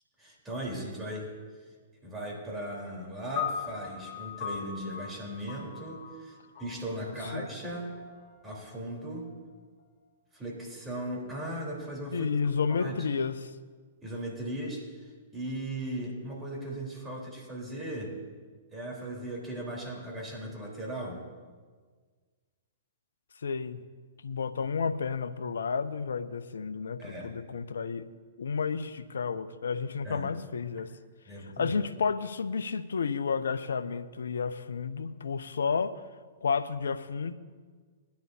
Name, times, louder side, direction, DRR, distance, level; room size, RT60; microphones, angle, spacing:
voice 1, 0.2-1.3 2.0-7.9 8.4-9.3 10.3-12.3 12.7-13.0 14.0-18.1 18.7-21.2 27.0-27.4 30.0-30.3 31.3-31.8, right 1 dB, 15° right, -2 dB, 4.0 m, -38 dB
sound 1, 3.4-9.8, left 7 dB, 40° left, 2.5 m, -40 dB
voice 2, 7.1-7.5 12.1-13.6 23.4-23.8 24.2-28.1 28.4-30.9 31.6-36.1 36.4-37.3, left 5 dB, 75° left, 14 dB, 0.6 m, -31 dB
20.5 x 11.5 x 2.8 m, 1.5 s
figure-of-eight pair, 110°, 0 cm